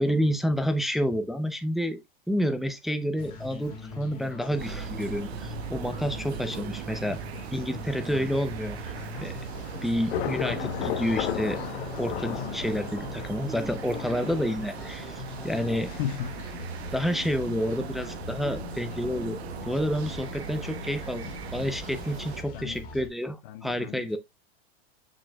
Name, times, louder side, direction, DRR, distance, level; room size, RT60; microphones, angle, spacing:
voice 1, 0.0-2.0 2.3-7.2 7.5-8.8 9.2-9.4 9.8-11.6 12.0-15.9 16.9-19.4 19.7-21.2 21.5-24.2, equal, ahead, 0.4 m, -29 dB
sound 1, 3.2-23.1, left 3 dB, 25° left, 2.0 m, -42 dB
sound 2, 4.6-22.4, right 9 dB, 85° right, 0.9 m, -39 dB
Thunder / Rain, 8.9-22.4, left 9 dB, 80° left, 1.2 m, -38 dB
voice 2, 15.9-16.4 22.5-22.8 23.4-24.2, left 10 dB, 55° left, 0.7 m, -35 dB
6.7 x 6.2 x 2.3 m
supercardioid pair, 145°, 31 cm